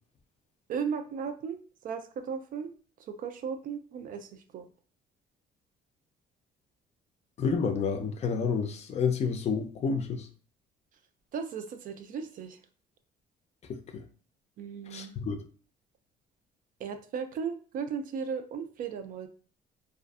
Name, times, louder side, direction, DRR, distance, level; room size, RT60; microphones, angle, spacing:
voice 1, 0.7-1.6 1.8-2.7 3.1-4.7 11.3-12.6 14.6-15.1 16.8-19.3, right 6 dB, 55° right, 8 dB, 0.4 m, -36 dB
voice 2, 7.4-10.3 13.7-14.0 14.9-15.4, left 5 dB, 40° left, 6 dB, 0.4 m, -30 dB
2.5 x 2.4 x 2.3 m, 0.41 s
cardioid pair, 110°, 17 cm